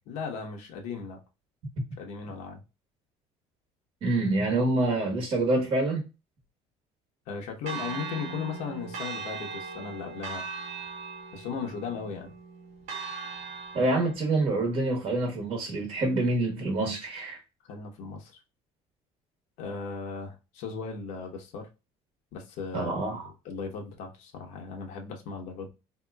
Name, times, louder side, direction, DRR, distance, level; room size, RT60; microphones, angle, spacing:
voice 1, 0.1-1.2 2.0-2.6 7.3-10.4 11.3-12.3 17.6-18.4 19.6-21.7 22.3-25.7, left 5 dB, 75° left, 1.0 m, -37 dB
voice 2, 4.0-6.0 13.7-17.4 22.7-23.3, right 2 dB, 45° right, 1.1 m, -26 dB
Church bell, 7.7-14.1, right 5 dB, 70° right, 0.9 m, -39 dB
3.5 x 2.9 x 2.3 m
cardioid pair, 145°, 13 cm